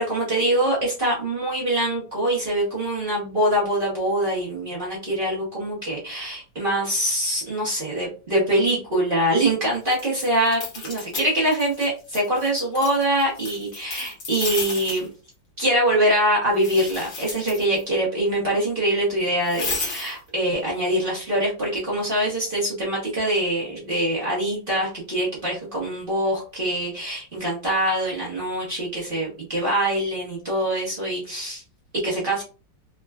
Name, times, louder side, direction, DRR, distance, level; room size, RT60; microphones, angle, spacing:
voice 1, 0.0-15.1 15.6-31.6 32.0-32.4, right 1 dB, 40° right, -5 dB, 0.8 m, -24 dB
sound 1, 9.9-11.9 12.1-15.1 16.5-17.8 19.5-20.2, left 3 dB, 60° left, 1.4 m, -33 dB
3.6 x 2.2 x 2.3 m, 0.35 s
omnidirectional pair, 2.1 m